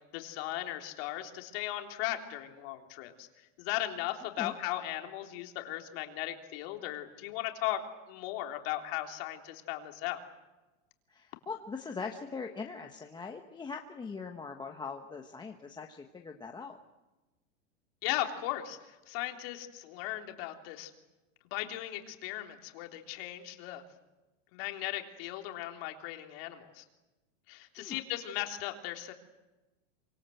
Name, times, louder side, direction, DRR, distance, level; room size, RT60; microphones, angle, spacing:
voice 1, 0.1-3.3 3.6-7.8 8.1-10.2 18.0-20.9 21.5-23.8 24.5-26.8 27.5-29.1, left 14 dB, 50° left, 4 dB, 3.5 m, -37 dB
voice 2, 11.1-16.8 27.8-28.0, left 5 dB, 10° left, 3 dB, 1.3 m, -41 dB
27.0 x 25.5 x 8.0 m, 1.1 s
supercardioid pair, 150°, 38 cm